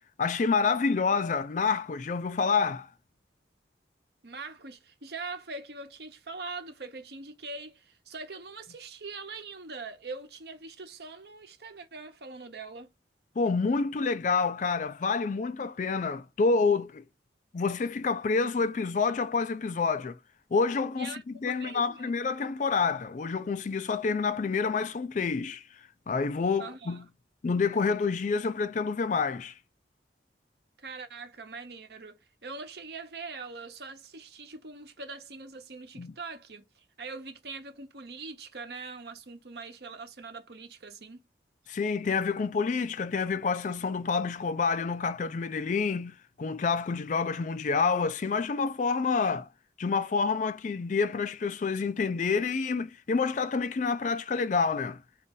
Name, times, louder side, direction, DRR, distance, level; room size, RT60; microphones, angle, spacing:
voice 1, 0.2-2.9 13.4-17.0 17.5-20.2 20.5-21.1 21.4-25.6 26.1-27.0 27.4-29.5 36.0-36.1 41.7-49.5 49.8-55.0, left 4 dB, 45° left, 0.4 m, -28 dB
voice 2, 4.2-12.9 21.0-22.1 26.6-27.0 30.8-41.2, right 3 dB, 65° right, 0.9 m, -42 dB
4.1 x 2.7 x 3.7 m
head